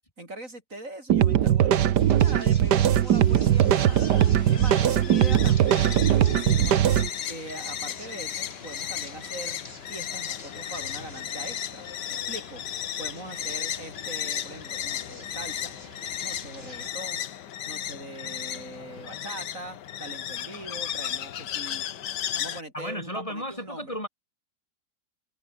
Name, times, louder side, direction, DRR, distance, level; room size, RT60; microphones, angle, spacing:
voice 1, 0.2-4.1 4.5-6.8 7.3-9.6 9.9-12.6 13.0-15.8 16.2-17.3 17.7-21.9 22.4-24.0, right 2 dB, 45° right, 6.1 m, -41 dB
sound 1, 1.1-7.1, right 10 dB, 75° right, 1.6 m, -20 dB
sound 2, 2.0-16.9, left 1 dB, 35° left, 7.7 m, -47 dB
sound 3, 2.9-22.6, left 10 dB, 75° left, 1.7 m, -35 dB
voice 2, 22.7-24.1, equal, 20° left, 5.3 m, -34 dB
omnidirectional pair, 1.9 m